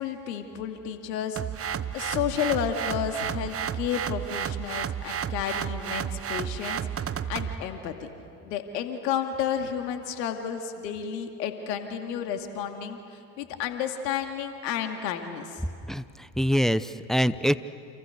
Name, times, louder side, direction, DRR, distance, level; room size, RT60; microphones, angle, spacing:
voice 1, 0.0-1.4 1.9-8.1 8.4-13.0 13.4-15.6, left 8 dB, 75° left, 5 dB, 2.5 m, -31 dB
sound 1, 1.4-7.6, right 9 dB, 30° right, 1.0 m, -32 dB
voice 2, 15.9-17.6, equal, ahead, 14 dB, 0.8 m, -25 dB
29.5 x 28.5 x 6.8 m, 2.5 s
hypercardioid pair, 70°, 50 cm